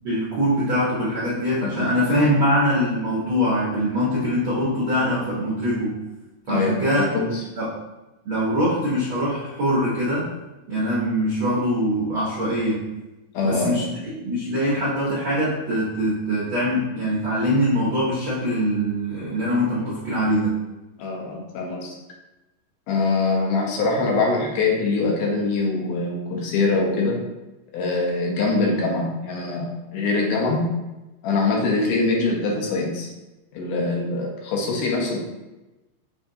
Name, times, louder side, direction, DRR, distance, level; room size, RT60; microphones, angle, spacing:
voice 1, 0.0-6.0 6.5-7.1 7.5-7.7 8.2-10.3 10.7-12.9 13.4-13.9 14.2-20.6, equal, 75° right, -8 dB, 1.1 m, -23 dB
voice 2, 6.5-7.4 13.3-13.8 21.0-21.9 22.9-27.2 27.7-30.7 31.2-33.1 33.5-35.2, left 3 dB, 80° left, -1 dB, 2.3 m, -23 dB
6.7 x 2.6 x 2.7 m, 1.0 s
omnidirectional pair, 3.9 m